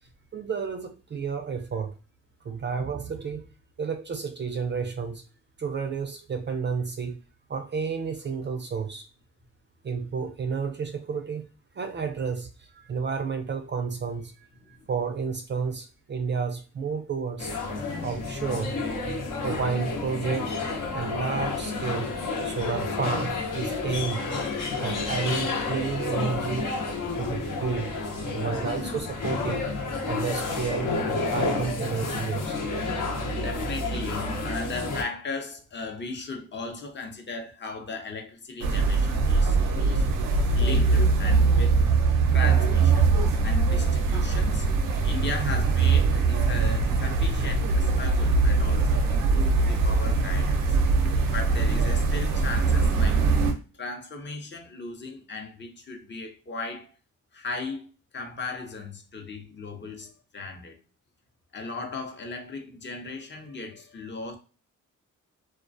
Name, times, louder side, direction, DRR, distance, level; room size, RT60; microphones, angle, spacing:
voice 1, 0.3-1.9 2.4-3.4 3.8-5.2 5.6-7.2 7.5-9.0 9.8-11.5 11.7-17.5 18.0-18.8 19.4-20.6 20.9-22.2 22.4-24.3 24.8-26.7 27.2-27.9 28.3-29.7 30.1-32.6, right 5 dB, 35° right, 0.4 m, -31 dB
voice 2, 14.5-14.9 18.2-18.3 33.4-40.1 40.5-41.8 42.3-43.2 43.4-44.7 45.0-50.8 51.2-53.3 53.7-56.9 57.3-57.9 58.1-60.8 61.5-64.4, left 3 dB, 35° left, 0.7 m, -37 dB
sound 1, 17.4-35.0, left 3 dB, 70° left, 0.8 m, -30 dB
sound 2, 38.6-53.5, right 4 dB, 85° right, 0.6 m, -22 dB
2.3 x 2.2 x 2.5 m
cardioid pair, 80°, 32 cm